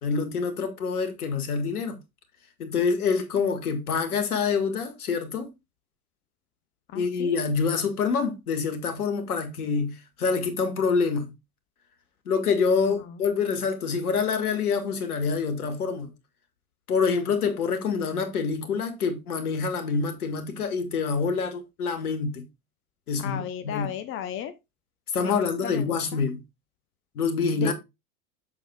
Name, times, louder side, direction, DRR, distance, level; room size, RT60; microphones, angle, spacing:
voice 1, 0.0-2.0 2.6-5.5 6.9-11.3 12.3-16.1 16.9-22.4 23.1-23.9 25.1-26.4 27.2-27.7, left 5 dB, 70° left, 1.9 m, -26 dB
voice 2, 6.9-7.3 12.8-13.2 23.2-24.5 25.2-26.2 27.5-27.7, left 10 dB, 25° left, 0.8 m, -35 dB
8.1 x 7.1 x 2.3 m
figure-of-eight pair, 85°, 47 cm